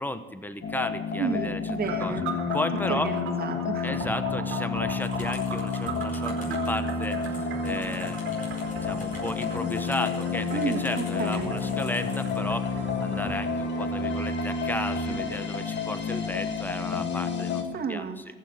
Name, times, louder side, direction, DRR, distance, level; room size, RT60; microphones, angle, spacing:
voice 1, 0.0-1.6 2.0-2.2 2.5-3.1 3.8-7.2 7.6-8.3 8.7-18.2, left 1 dB, 10° left, 10 dB, 1.1 m, -34 dB
sound 1, 0.6-17.6, left 5 dB, 65° left, 2.0 m, -30 dB
voice 2, 1.2-2.3 2.9-3.9 10.5-11.6 17.7-18.2, right 5 dB, 50° right, 5 dB, 1.7 m, -31 dB
sound 2, 1.8-13.5, right 5 dB, 80° right, 2.0 m, -39 dB
sound 3, 5.0-12.4, left 3 dB, 45° left, 4.8 m, -48 dB
15.0 x 6.6 x 8.9 m, 1.3 s
cardioid pair, 90°, 20 cm